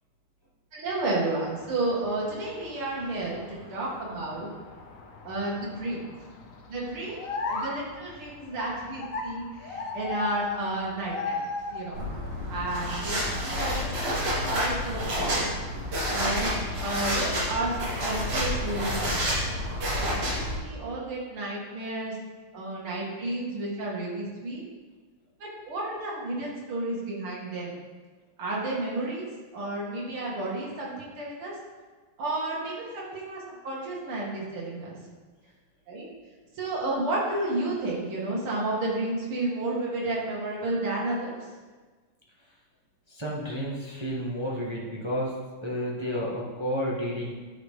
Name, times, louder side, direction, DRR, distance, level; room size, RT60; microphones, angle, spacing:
voice 1, 0.7-4.5 5.2-6.0 6.7-7.2 7.5-11.4 11.7-12.1 12.5-15.4 16.1-16.5 16.8-19.4 20.0-22.2 22.5-24.6 25.4-27.7 28.4-29.3 29.5-31.6 32.2-35.0 35.9-36.0 36.5-41.4, right 2 dB, 80° right, -4 dB, 2.9 m, -32 dB
sound 1, 1.5-12.3, left 3 dB, 55° left, 1.0 m, -37 dB
sound 2, 11.9-20.5, equal, 50° right, 2.7 m, -29 dB
voice 2, 43.1-45.4 45.6-47.3, equal, 15° right, -5 dB, 1.2 m, -31 dB
11.5 x 6.1 x 3.7 m, 1.4 s
omnidirectional pair, 2.3 m